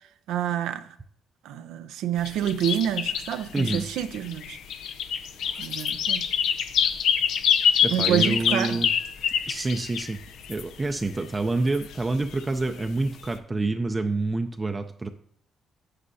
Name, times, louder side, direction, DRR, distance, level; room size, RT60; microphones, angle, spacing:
voice 1, 0.3-0.9 1.4-4.6 5.6-6.2 7.9-8.8, right 10 dB, 90° right, 0.6 m, -28 dB
sound 1, 2.3-10.7 11.0-11.4 11.7-12.6 12.8-13.3, left 8 dB, 80° left, 0.6 m, -26 dB
voice 2, 3.5-3.9 7.8-8.9 9.5-10.2 10.5-15.1, right 2 dB, 25° right, 0.5 m, -27 dB
9.7 x 8.9 x 2.7 m
cardioid pair, 90°, 0 cm